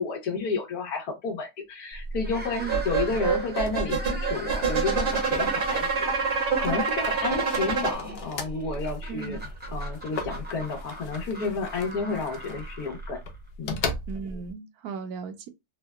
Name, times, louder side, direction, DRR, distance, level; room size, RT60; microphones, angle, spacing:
voice 1, 0.0-9.4 9.7-13.2 13.6-13.8, left 4 dB, 85° left, 1.3 m, -31 dB
sound 1, 1.9-14.5, left 1 dB, 65° left, 0.6 m, -37 dB
sound 2, 2.2-13.5, right 1 dB, 10° right, 0.5 m, -40 dB
sound 3, 2.7-7.9, right 5 dB, 50° right, 0.8 m, -26 dB
voice 2, 9.1-9.4 14.1-15.5, right 6 dB, 80° right, 1.1 m, -36 dB
3.6 x 2.1 x 2.3 m
omnidirectional pair, 1.6 m